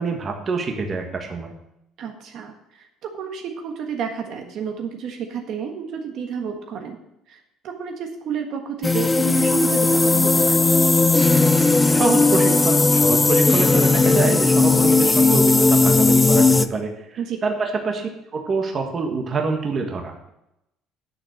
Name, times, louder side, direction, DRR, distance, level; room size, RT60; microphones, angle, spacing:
voice 1, 0.0-1.5 11.9-18.0 18.3-20.3, right 4 dB, 30° right, 3 dB, 1.5 m, -26 dB
voice 2, 2.0-7.0 7.3-10.6 17.2-17.4, right 7 dB, 55° right, 4 dB, 1.5 m, -31 dB
sound 1, 8.8-16.7, left 3 dB, 10° left, 0.4 m, -17 dB
9.8 x 7.0 x 6.4 m, 0.85 s
cardioid pair, 150°, 0 cm